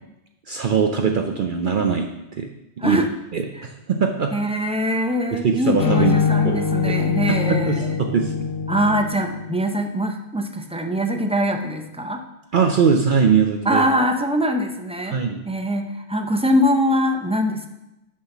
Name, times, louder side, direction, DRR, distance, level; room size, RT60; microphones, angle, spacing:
voice 1, 0.5-2.1 2.4-2.5 2.8-3.0 3.3-4.3 5.3-6.2 6.4-7.0 7.3-8.3 12.5-13.9 15.1-15.4, right 6 dB, 55° right, 4 dB, 0.7 m, -21 dB
voice 2, 4.3-8.0 8.7-12.2 13.7-15.2 15.5-17.7, equal, 10° right, 4 dB, 0.3 m, -22 dB
sound 1, 5.8-9.6, left 6 dB, 60° left, 0.9 m, -23 dB
6.4 x 5.7 x 5.8 m, 0.93 s
omnidirectional pair, 1.1 m